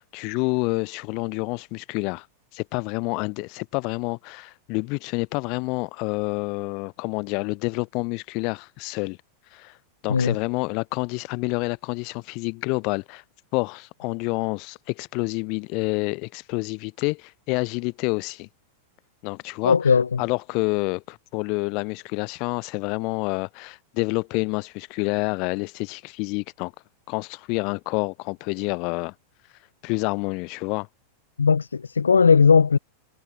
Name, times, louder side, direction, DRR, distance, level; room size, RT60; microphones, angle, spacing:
voice 1, 0.0-2.3 2.5-9.2 9.5-9.8 10.0-13.2 13.5-18.5 19.2-19.8 20.2-26.7 27.1-29.1 29.8-30.9, left 30 dB, 45° left, 4.3 m, -28 dB
voice 2, 19.6-20.2 31.4-32.8, left 5 dB, 75° left, 0.9 m, -18 dB
figure-of-eight pair, 90°, 0 cm